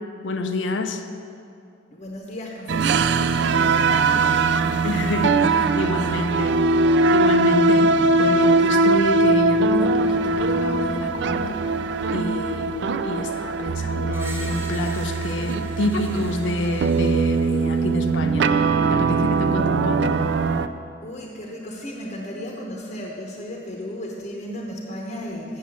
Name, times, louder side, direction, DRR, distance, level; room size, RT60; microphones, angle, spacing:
voice 1, 0.2-1.1 4.8-11.6 12.1-18.6 18.9-20.2, left 2 dB, 75° left, 7 dB, 0.6 m, -28 dB
voice 2, 1.9-4.5 21.0-25.6, equal, 40° left, -1 dB, 0.9 m, -35 dB
sound 1, 2.7-20.7, right 3 dB, 60° right, 0.4 m, -21 dB
Screech, 14.1-18.1, right 1 dB, 15° right, 1.0 m, -42 dB
7.5 x 7.2 x 7.1 m, 2.5 s
head